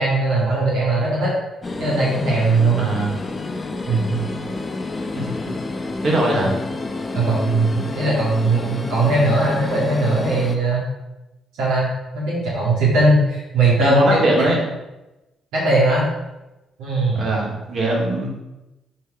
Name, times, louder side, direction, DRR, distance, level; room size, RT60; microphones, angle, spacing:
voice 1, 0.0-1.3 1.8-2.9 3.9-4.2 7.1-10.8 11.6-11.9 12.1-14.3 15.5-16.1 16.8-17.3, right 2 dB, 85° right, -5 dB, 2.0 m, -19 dB
sound 1, 1.6-10.6, left 3 dB, 30° left, 0.9 m, -29 dB
voice 2, 2.8-3.1 5.1-5.3 6.0-6.5 13.8-14.6 17.1-18.3, right 1 dB, 55° right, -2 dB, 2.6 m, -20 dB
6.8 x 4.5 x 5.0 m, 1.0 s
supercardioid pair, 65°, 0 cm